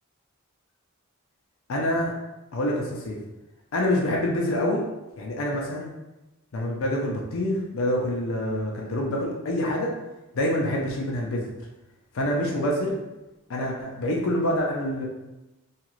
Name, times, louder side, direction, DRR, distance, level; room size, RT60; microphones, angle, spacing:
voice 1, 1.7-2.1 2.5-3.2 3.7-4.8 5.2-5.9 6.5-9.9 10.3-11.5 12.1-12.9 13.5-15.1, left 1 dB, 70° left, -2 dB, 0.5 m, -26 dB
2.8 x 2.4 x 3.0 m, 1.0 s
head